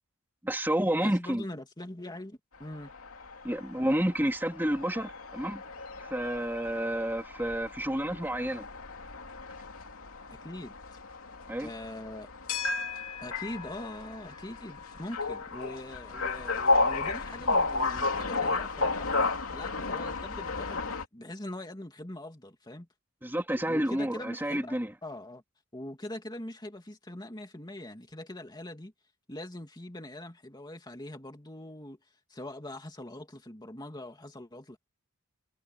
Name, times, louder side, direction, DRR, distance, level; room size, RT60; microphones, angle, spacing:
voice 1, 0.4-1.4 3.4-5.6 6.0-8.7 11.5-11.7 23.2-24.9, right 1 dB, 10° right, 2.9 m, -30 dB
voice 2, 1.0-2.9 10.4-10.7 11.6-12.3 13.2-19.1 19.5-22.9 23.7-25.4 25.7-28.9 29.3-32.0 32.3-34.8, left 1 dB, 20° left, 2.5 m, -42 dB
sound 1, 2.7-21.1, left 3 dB, 65° left, 3.1 m, -33 dB
head